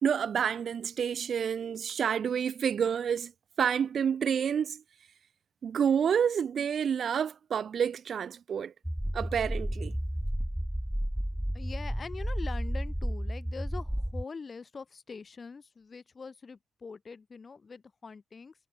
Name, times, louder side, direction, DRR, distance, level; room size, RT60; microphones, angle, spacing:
voice 1, 0.0-3.3 3.6-4.8 5.6-8.7 9.1-9.9, right 7 dB, 60° right, 0.7 m, -29 dB
sound 1, 8.8-14.2, equal, 5° right, 0.8 m, -32 dB
voice 2, 11.5-18.5, left 5 dB, 45° left, 2.2 m, -43 dB
supercardioid pair, 50°, 0 cm